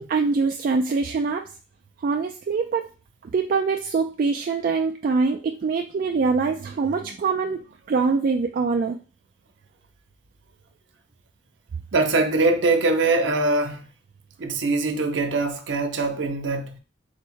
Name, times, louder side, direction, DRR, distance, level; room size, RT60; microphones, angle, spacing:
voice 1, 0.0-1.5 2.0-2.9 3.2-9.0, right 4 dB, 50° right, 0.3 m, -24 dB
voice 2, 11.9-13.8 14.4-16.8, right 3 dB, 90° right, 0.7 m, -22 dB
4.3 x 2.1 x 4.6 m
head